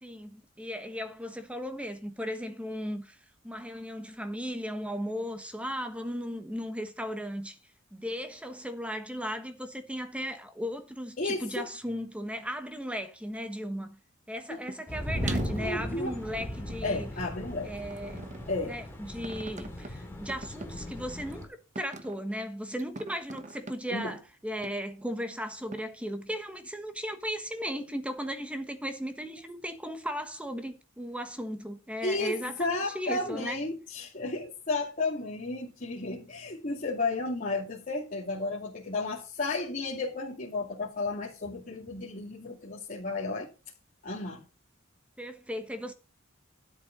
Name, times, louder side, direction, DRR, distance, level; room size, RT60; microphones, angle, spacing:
voice 1, 0.0-3.2 3.4-7.6 7.9-13.9 14.3-17.1 17.6-18.2 18.6-33.6 45.2-45.9, equal, 5° right, 1.3 m, -36 dB
voice 2, 11.2-11.7 14.5-14.6 15.6-16.1 16.8-17.7 18.5-18.8 23.9-24.1 32.0-43.5 44.0-44.4, left 3 dB, 40° left, 2.6 m, -33 dB
sound 1, 14.7-14.8 15.2-17.1 17.8-18.6 19.2-19.9 20.3-20.7 21.3-21.4 21.7-22.1 22.8-23.7 24.6-24.7 25.7-25.8, right 2 dB, 35° right, 1.2 m, -39 dB
sound 2, 14.9-21.5, left 1 dB, 10° left, 2.8 m, -37 dB
12.5 x 7.0 x 5.3 m
head